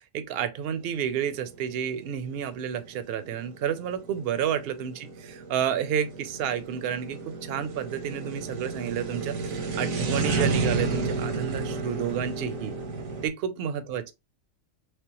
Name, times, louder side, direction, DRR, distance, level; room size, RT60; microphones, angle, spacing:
voice 1, 0.1-12.7 13.2-14.1, right 8 dB, 60° right, 0.7 m, -30 dB
sound 1, 0.8-13.3, right 3 dB, 85° right, 1.2 m, -32 dB
3.3 x 3.2 x 2.9 m
omnidirectional pair, 1.4 m